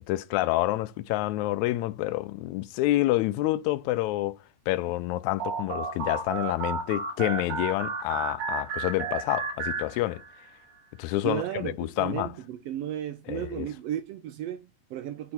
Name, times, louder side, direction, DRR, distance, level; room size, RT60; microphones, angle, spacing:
voice 1, 0.1-4.4 4.7-10.2 11.0-12.3 13.3-13.7, left 17 dB, 80° left, 1.8 m, -28 dB
sound 1, 5.4-10.5, right 5 dB, 65° right, 2.7 m, -33 dB
voice 2, 11.2-15.3, right 11 dB, 80° right, 1.4 m, -34 dB
9.6 x 4.0 x 4.4 m
omnidirectional pair, 3.5 m